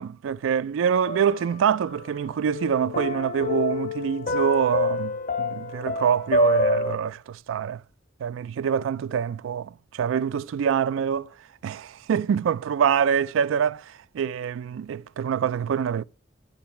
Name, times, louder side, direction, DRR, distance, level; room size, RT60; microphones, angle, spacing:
voice 1, 0.0-7.8 8.2-11.3 11.6-16.0, right 7 dB, 85° right, 0.3 m, -25 dB
sound 1, 1.0-2.1 2.5-7.0, left 2 dB, 45° left, 0.6 m, -26 dB
8.9 x 6.4 x 4.4 m
head